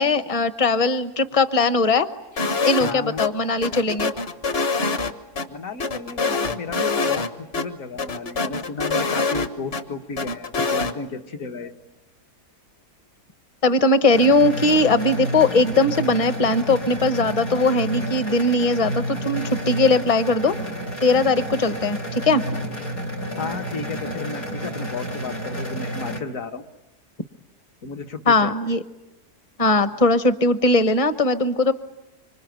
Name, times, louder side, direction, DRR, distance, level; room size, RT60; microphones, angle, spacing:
voice 1, 0.0-2.1 2.3-4.1 13.6-20.5 21.0-22.4 28.3-28.8 29.6-31.7, left 2 dB, 25° left, 11 dB, 0.9 m, -19 dB
sound 1, 2.4-2.9 3.2-3.3 3.6-5.4 5.8-7.3 7.5-7.6 8.0-9.8 10.2-10.9, left 4 dB, 40° left, 1.3 m, -24 dB
voice 2, 2.8-3.3 5.5-11.7 23.4-26.7 27.8-28.5, left 4 dB, 55° left, 5 dB, 1.7 m, -33 dB
sound 2, 14.1-26.2, right 1 dB, 80° left, 3.6 m, -30 dB
26.0 x 25.0 x 9.1 m, 0.98 s
omnidirectional pair, 1.7 m